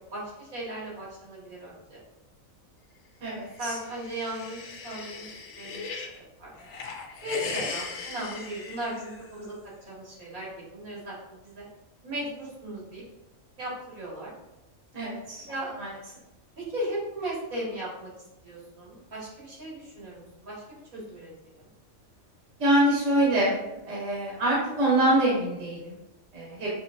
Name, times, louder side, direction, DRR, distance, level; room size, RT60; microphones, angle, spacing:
voice 1, 0.1-2.0 3.6-5.3 5.6-6.5 7.2-11.7 12.0-13.0 13.6-14.3 15.5-15.7 16.6-18.1 18.4-21.7, right 1 dB, 85° right, -6 dB, 2.2 m, -37 dB
voice 2, 3.2-3.7 14.9-15.4 15.8-15.9 22.6-25.9 26.3-26.7, right 1 dB, 65° right, -5 dB, 1.4 m, -25 dB
sound 1, 3.5-6.2 6.6-9.4, left 4 dB, 60° left, 0.7 m, -38 dB
6.2 x 2.8 x 2.6 m, 0.95 s
omnidirectional pair, 1.4 m